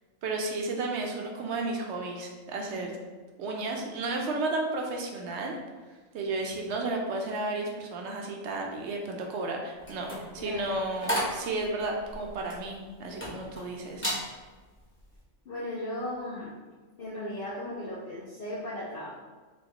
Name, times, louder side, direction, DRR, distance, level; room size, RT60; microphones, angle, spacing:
voice 1, 0.2-3.0 3.4-5.6 6.1-10.1 10.3-14.1, right 2 dB, 65° right, 1 dB, 0.8 m, -33 dB
sound 1, 9.8-13.6 13.9-14.3 14.7-15.0, equal, 10° left, 0.7 m, -34 dB
voice 2, 15.5-16.5 17.0-19.1, left 1 dB, 55° left, -6 dB, 0.7 m, -36 dB
4.3 x 2.3 x 2.9 m, 1.4 s
omnidirectional pair, 1.4 m